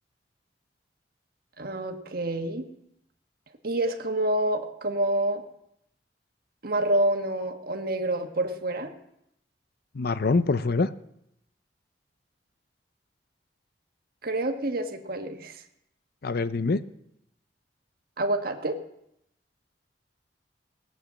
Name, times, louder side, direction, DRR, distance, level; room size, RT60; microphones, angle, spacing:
voice 1, 1.6-2.7 3.6-5.4 6.6-8.9 14.2-15.6 18.2-18.8, right 1 dB, 60° right, 4 dB, 1.4 m, -27 dB
voice 2, 9.9-10.9 16.2-16.8, left 3 dB, 60° left, 14 dB, 0.6 m, -24 dB
17.5 x 9.1 x 7.4 m, 0.79 s
head